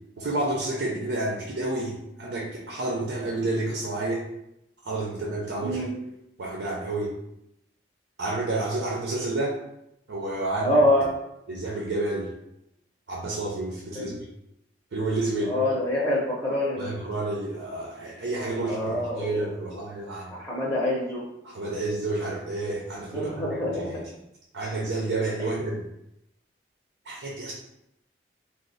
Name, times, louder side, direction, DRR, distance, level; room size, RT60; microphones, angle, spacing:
voice 1, 0.2-4.3 4.8-5.8 6.4-7.1 8.2-9.6 10.1-10.8 11.5-12.3 13.1-14.1 14.9-15.5 16.8-20.4 21.4-23.9 24.5-25.8 27.1-27.5, right 2 dB, 85° right, -3 dB, 0.6 m, -30 dB
voice 2, 10.6-11.1 13.9-14.1 15.5-16.9 18.6-19.8 20.1-21.2 23.1-24.0 25.4-25.5, left 1 dB, 10° left, -5 dB, 0.6 m, -26 dB
3.1 x 2.0 x 3.9 m, 0.84 s
head